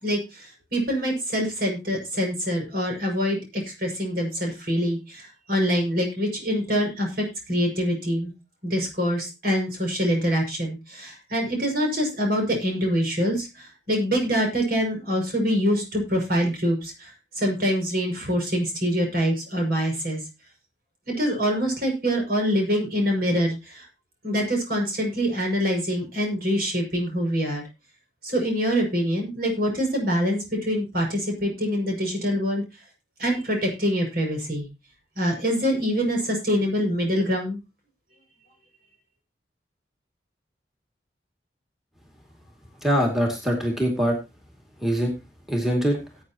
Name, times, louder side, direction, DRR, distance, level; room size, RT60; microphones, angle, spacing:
voice 1, 0.0-8.3 8.6-20.2 21.1-23.9 24.2-27.6 28.2-32.6 33.2-34.7 35.2-37.6, equal, 55° right, 1 dB, 6.3 m, -25 dB
voice 2, 42.8-44.2 44.8-45.1 45.5-46.0, equal, ahead, 1 dB, 2.5 m, -23 dB
18.5 x 8.8 x 3.0 m, 0.26 s
head